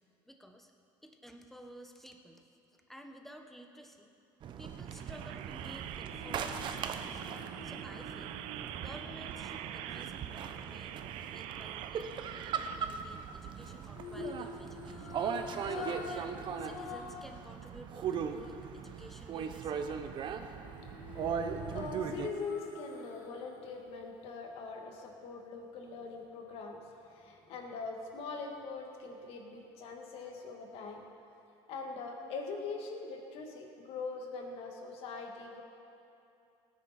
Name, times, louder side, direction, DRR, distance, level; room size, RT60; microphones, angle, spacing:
voice 1, 0.3-0.7 1.0-2.5 2.9-4.1 4.6-7.2 7.6-8.4 8.8-11.1 11.3-15.2 15.7-19.8, equal, ahead, 3 dB, 1.1 m, -53 dB
sound 1, 4.4-22.3, right 7 dB, 50° right, 0.8 m, -39 dB
sound 2, 4.8-12.8, right 11 dB, 75° right, 0.5 m, -45 dB
sound 3, 6.1-10.4 13.9-17.3 17.7-17.8 20.6-23.5 23.9-24.0, left 4 dB, 85° left, 1.7 m, -46 dB
voice 2, 21.5-31.0 31.7-35.6, left 4 dB, 65° left, 2 dB, 1.9 m, -42 dB
17.5 x 9.9 x 4.3 m, 2.7 s
supercardioid pair, 105°, 10 cm